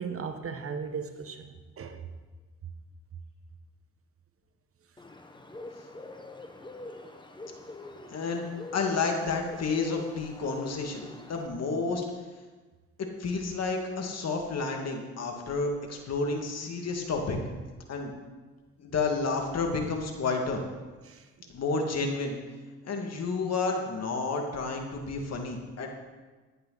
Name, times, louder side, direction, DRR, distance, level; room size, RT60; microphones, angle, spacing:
voice 1, 0.0-2.0 21.0-21.2, right 5 dB, 45° right, 6 dB, 1.3 m, -37 dB
Bird, 5.0-11.5, left 2 dB, 15° left, 1.2 m, -44 dB
voice 2, 8.1-8.4 8.7-12.0 13.2-17.4 17.9-18.1 18.8-20.6 21.5-22.4 22.8-25.9, left 4 dB, 55° left, 2 dB, 2.3 m, -30 dB
15.5 x 9.6 x 4.1 m, 1.3 s
cardioid pair, 90°, 30 cm